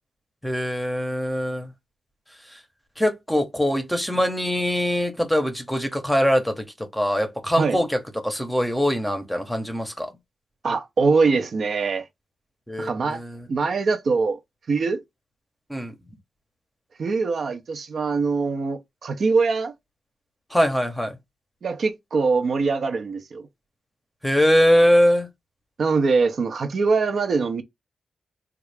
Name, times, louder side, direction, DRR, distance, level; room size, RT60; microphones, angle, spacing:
voice 1, 0.4-1.7 2.5-2.6 3.0-6.6 6.9-10.1 12.7-13.5 15.7-15.9 20.5-21.2 24.2-25.3, equal, 5° left, 0.8 m, -22 dB
voice 2, 10.6-12.0 12.8-13.2 13.5-14.4 14.7-15.0 17.0-19.7 21.6-23.5 25.8-27.6, right 4 dB, 55° right, 0.6 m, -23 dB
3.7 x 2.3 x 3.3 m
wide cardioid pair, 135°, 0 cm